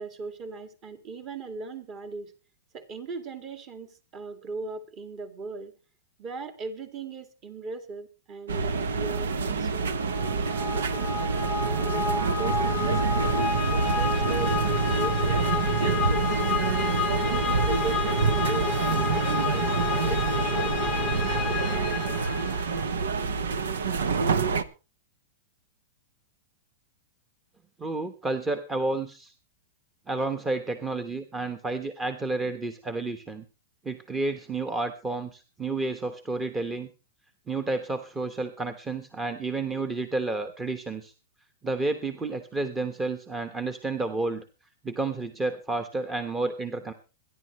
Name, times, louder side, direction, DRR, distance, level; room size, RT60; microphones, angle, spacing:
voice 1, 0.0-2.3 2.7-5.7 6.2-9.9 10.2-11.2 11.6-20.7, right 4 dB, 30° right, 8 dB, 2.2 m, -39 dB
sound 1, 8.5-24.6, right 5 dB, 90° right, 1.1 m, -27 dB
sound 2, 10.0-22.8, left 6 dB, 20° left, 0.8 m, -30 dB
sound 3, 12.4-20.4, right 4 dB, 65° right, 5.2 m, -39 dB
voice 2, 27.8-29.3 30.1-33.4 33.8-36.9 37.5-41.1 41.6-44.4 44.8-46.9, right 3 dB, 15° right, 8 dB, 1.1 m, -30 dB
26.0 x 11.0 x 3.1 m, 0.32 s
hypercardioid pair, 145°, 0 cm